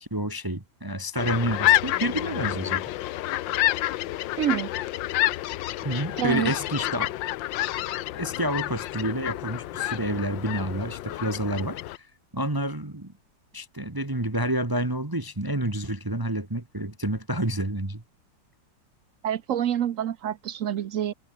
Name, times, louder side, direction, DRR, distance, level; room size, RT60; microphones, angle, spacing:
voice 1, 0.0-2.8 5.8-7.1 8.1-12.1 12.3-13.1 13.5-18.0, right 1 dB, 10° right, 1.5 m, -29 dB
sound 1, 1.2-12.0, left 15 dB, 80° left, 1.4 m, -28 dB
voice 2, 4.4-4.7 6.2-6.5 19.2-21.1, right 10 dB, 60° right, 0.9 m, -27 dB
omnidirectional pair, 2.0 m